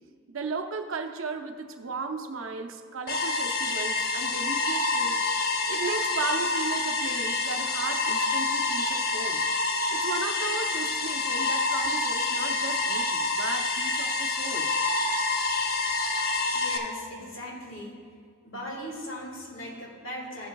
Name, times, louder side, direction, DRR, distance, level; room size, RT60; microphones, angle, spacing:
voice 1, 0.3-5.2 5.7-9.5 9.9-14.7, right 4 dB, 85° right, 6 dB, 0.6 m, -35 dB
sound 1, 3.1-16.8, left 3 dB, 50° left, 0.7 m, -27 dB
voice 2, 16.5-18.1 18.4-20.5, equal, 85° left, -1 dB, 1.8 m, -39 dB
13.0 x 7.1 x 2.3 m, 2.1 s
head